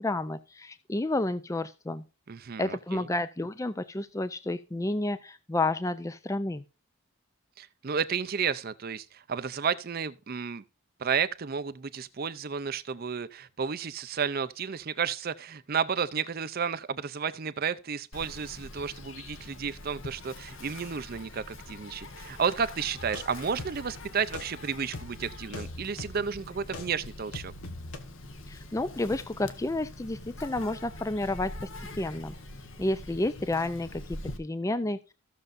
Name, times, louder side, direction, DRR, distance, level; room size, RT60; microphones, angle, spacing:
voice 1, 0.0-2.0 2.6-6.6 28.5-31.7 32.0-32.3 32.8-35.0, left 2 dB, 15° left, 0.4 m, -30 dB
voice 2, 2.3-3.1 7.6-10.6 11.0-27.5, right 6 dB, 45° right, 0.5 m, -32 dB
Insect, 18.1-34.4, left 2 dB, 60° left, 1.2 m, -44 dB
sound 1, 23.0-26.9 27.3-28.0, left 2 dB, 85° left, 1.6 m, -42 dB
15.5 x 6.6 x 2.5 m
head